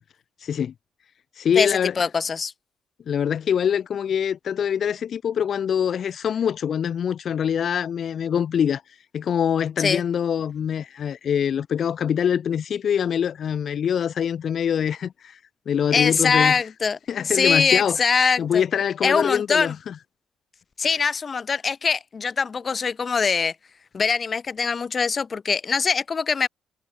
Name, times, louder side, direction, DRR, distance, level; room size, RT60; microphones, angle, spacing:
voice 1, 0.4-0.7 1.4-1.9 3.1-8.8 9.1-15.4 15.7-16.6 17.1-18.0 18.4-19.9, left 8 dB, 60° left, 6.4 m, -24 dB
voice 2, 1.6-2.5 9.8-10.0 15.9-17.0 17.2-18.6 19.0-19.7 20.8-23.5 23.9-26.5, left 5 dB, 40° left, 7.0 m, -22 dB
cardioid pair, 90°, 0 cm